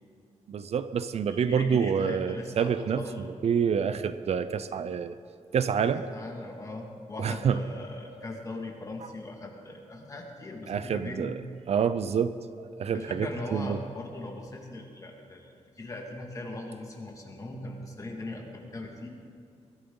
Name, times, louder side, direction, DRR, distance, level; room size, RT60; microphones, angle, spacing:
voice 1, 0.5-5.1 5.5-6.0 7.2-7.6 10.7-11.3 11.7-13.8, right 7 dB, 60° right, 12 dB, 0.5 m, -27 dB
voice 2, 1.3-3.3 5.9-11.3 12.9-19.1, left 2 dB, 25° left, 0 dB, 2.1 m, -39 dB
22.0 x 14.0 x 3.9 m, 2.5 s
wide cardioid pair, 165°, 12 cm